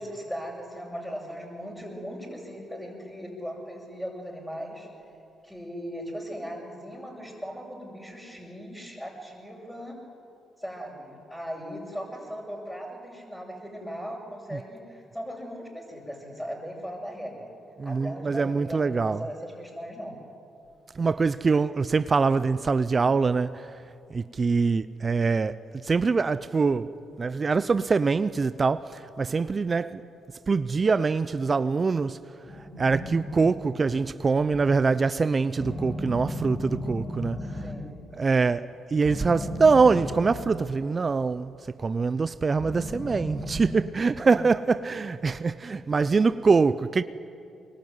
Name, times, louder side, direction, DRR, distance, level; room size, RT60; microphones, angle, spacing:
voice 1, 0.0-4.9 5.4-10.0 10.6-17.5 17.8-20.3 37.4-37.9 44.2-44.4, equal, 5° left, 6.9 m, -38 dB
voice 2, 17.8-19.2 21.0-23.7 24.1-25.5 25.8-26.9 27.2-30.0 30.5-32.2 32.8-37.4 38.2-41.5 41.8-47.0, right 4 dB, 40° right, 0.7 m, -24 dB
sound 1, 32.4-34.8 35.6-38.2 39.0-41.1 42.5-44.2, equal, 40° left, 6.9 m, -36 dB
24.0 x 22.5 x 9.6 m
supercardioid pair, 55°, 0 cm